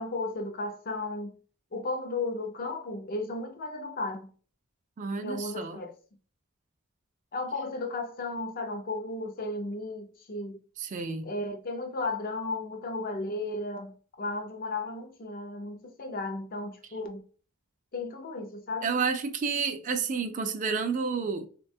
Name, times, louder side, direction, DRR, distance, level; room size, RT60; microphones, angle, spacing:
voice 1, 0.0-1.3 1.7-4.3 5.2-5.9 7.3-10.6 11.2-17.2 17.9-18.9, left 2 dB, 45° left, 0.5 m, -34 dB
voice 2, 5.0-5.8 10.8-11.3 18.8-21.5, right 5 dB, 40° right, 0.3 m, -30 dB
3.3 x 2.2 x 2.5 m
head